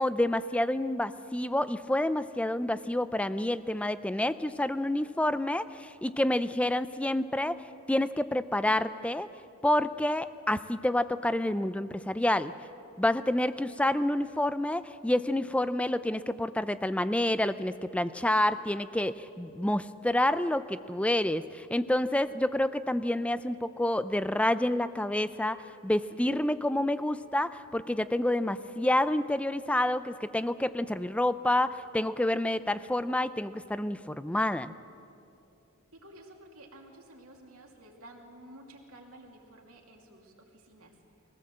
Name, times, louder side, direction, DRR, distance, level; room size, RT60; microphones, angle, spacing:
voice 1, 0.0-7.5 7.9-9.3 9.6-12.5 13.0-34.7, left 1 dB, 5° left, 13 dB, 0.4 m, -28 dB
voice 2, 35.9-40.9, right 1 dB, 70° right, 1 dB, 2.7 m, -52 dB
22.0 x 17.0 x 7.6 m, 2.8 s
head